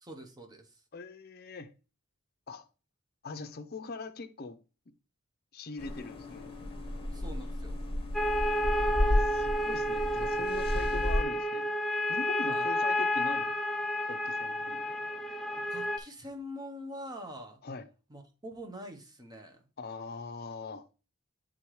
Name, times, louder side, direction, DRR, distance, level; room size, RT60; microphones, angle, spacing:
voice 1, 0.0-0.7 7.1-7.8 12.5-12.7 15.7-17.6 18.1-19.6, equal, 20° right, 0.9 m, -44 dB
voice 2, 0.9-1.7 2.5-2.7 3.2-4.6 5.5-6.5 9.0-11.7 12.1-13.5 14.1-14.9 17.6-17.9 19.8-20.9, left 3 dB, 45° left, 0.6 m, -42 dB
sound 1, 5.8-11.2, left 1 dB, 25° left, 1.0 m, -32 dB
sound 2, 8.1-16.0, equal, ahead, 0.3 m, -30 dB
8.4 x 3.8 x 3.0 m
head